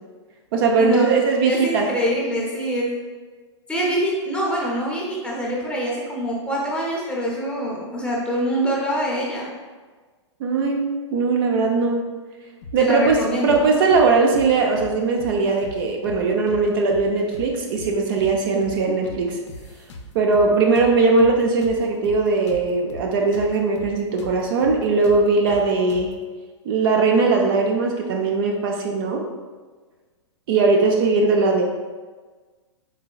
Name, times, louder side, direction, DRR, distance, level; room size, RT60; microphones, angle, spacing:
voice 1, 0.5-1.9 10.4-12.1 12.7-13.2 13.4-19.4 20.1-26.1 26.7-29.2 30.5-31.6, right 4 dB, 50° right, 1 dB, 0.5 m, -19 dB
voice 2, 1.4-2.9 3.7-9.5 12.8-13.7, equal, 5° left, -4 dB, 0.7 m, -24 dB
sound 1, 12.6-13.2 13.5-13.6 13.9-14.9 15.2-15.3 15.6-16.6 16.9-17.1 17.3-18.3 18.6-18.8 19.0-20.5 20.8-23.5 23.8-23.9 24.2-26.2, left 2 dB, 65° left, 0.5 m, -39 dB
3.9 x 2.9 x 2.3 m, 1.4 s
hypercardioid pair, 125°, 16 cm